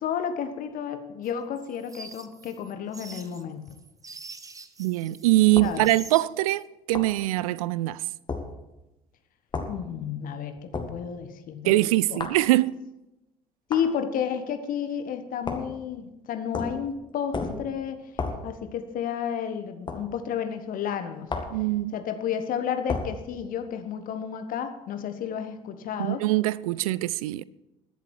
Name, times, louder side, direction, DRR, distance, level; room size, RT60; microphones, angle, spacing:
voice 1, 0.0-3.7 5.6-5.9 9.7-11.8 12.1-12.2 13.7-18.0 18.4-21.5 21.9-26.2, left 8 dB, 45° left, 1.3 m, -31 dB
sound 1, 1.2-5.3 5.6-6.6, right 3 dB, 15° right, 1.0 m, -45 dB
voice 2, 4.8-8.0 11.6-12.8 21.5-21.9 26.0-27.4, right 17 dB, 65° right, 0.4 m, -23 dB
sound 2, 5.6-5.8 6.9-7.2 8.3-8.5 9.5-9.7 10.7-11.0 12.2-12.4 13.7-13.9 15.4-15.8 16.5-16.8 17.3-17.7 18.2-18.4 19.9-20.0 21.3-21.6 22.9-23.1, left 4 dB, 25° left, 2.0 m, -32 dB
21.5 x 7.5 x 4.6 m
figure-of-eight pair, 60°, 20 cm